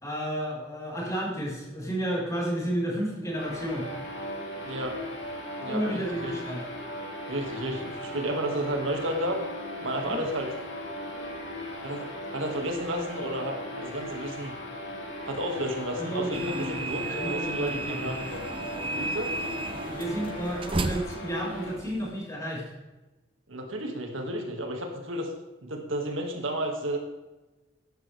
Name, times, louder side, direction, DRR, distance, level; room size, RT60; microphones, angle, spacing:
voice 1, 0.0-3.8 5.7-6.6 10.0-10.2 16.0-18.1 19.9-22.6, equal, 15° left, -5 dB, 4.6 m, -32 dB
sound 1, 3.4-21.8, left 1 dB, 60° left, 3.5 m, -38 dB
voice 2, 4.6-5.0 5.6-6.3 7.3-9.4 9.8-10.5 11.8-14.5 15.2-18.5 18.9-19.4 23.5-25.3 25.6-27.0, right 1 dB, 75° right, 2 dB, 2.2 m, -32 dB
sound 2, 16.3-22.2, right 3 dB, 25° right, 0.5 m, -34 dB
14.0 x 11.0 x 3.5 m, 1.1 s
head